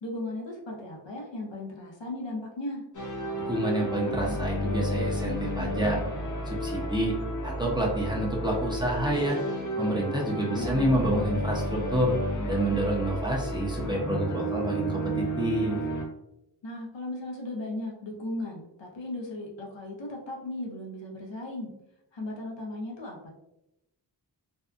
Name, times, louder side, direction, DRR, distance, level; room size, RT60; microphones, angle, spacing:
voice 1, 0.0-2.8 10.2-10.7 16.6-21.7 22.1-23.3, left 1 dB, 80° left, -1 dB, 0.7 m, -36 dB
sound 1, 2.9-16.1, equal, 45° left, 0.5 m, -32 dB
voice 2, 3.5-6.0 6.5-9.4 9.8-12.1 12.5-15.8, right 1 dB, 10° right, -3 dB, 0.6 m, -28 dB
2.6 x 2.2 x 2.4 m, 0.86 s
wide cardioid pair, 95°, 44 cm